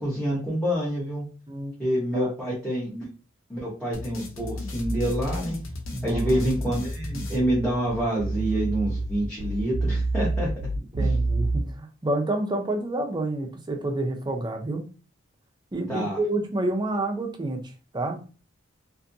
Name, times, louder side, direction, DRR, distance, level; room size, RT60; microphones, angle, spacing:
voice 1, 0.0-1.2 1.8-3.1 3.5-5.6 6.0-10.5 11.0-11.1 15.9-16.2, right 1 dB, 5° left, -8 dB, 0.8 m, -27 dB
sound 1, 3.9-8.2, left 1 dB, 75° left, 0.6 m, -34 dB
voice 2, 5.9-6.2 11.0-14.8 15.7-17.6 17.9-18.2, right 2 dB, 20° right, 2 dB, 0.5 m, -28 dB
sound 2, 6.6-11.6, right 2 dB, 75° right, 0.5 m, -28 dB
2.5 x 2.5 x 2.6 m, 0.36 s
head